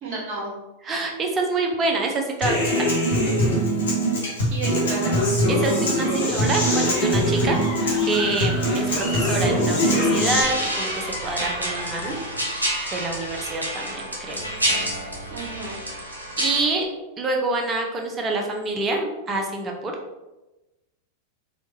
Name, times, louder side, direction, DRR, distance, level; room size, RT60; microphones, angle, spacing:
voice 1, 0.0-0.5 4.5-5.2 15.3-15.8, right 2 dB, 45° right, -3 dB, 1.3 m, -32 dB
voice 2, 0.8-2.7 5.5-7.6 8.0-12.2 12.9-14.4 16.4-16.9 17.2-19.9, right 3 dB, 25° right, 2 dB, 0.6 m, -26 dB
Human voice / Acoustic guitar, 2.4-10.4, equal, 70° left, 1.1 m, -22 dB
sound 1, 4.9-13.5, left 2 dB, 35° left, 1.1 m, -36 dB
sound 2, 10.4-16.6, equal, 80° right, 0.7 m, -29 dB
4.4 x 2.3 x 2.7 m, 1.1 s
figure-of-eight pair, 90°, 0 cm